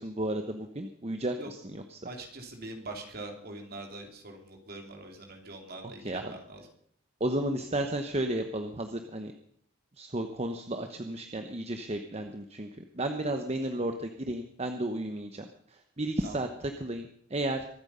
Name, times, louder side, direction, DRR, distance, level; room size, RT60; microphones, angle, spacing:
voice 1, 0.0-2.0 6.0-6.3 7.2-9.3 10.0-12.7 12.9-17.7, right 1 dB, 30° right, 6 dB, 1.0 m, -33 dB
voice 2, 1.3-1.7 2.0-6.7 16.2-16.5, right 2 dB, 50° right, 3 dB, 2.9 m, -43 dB
24.0 x 8.9 x 5.5 m, 0.65 s
head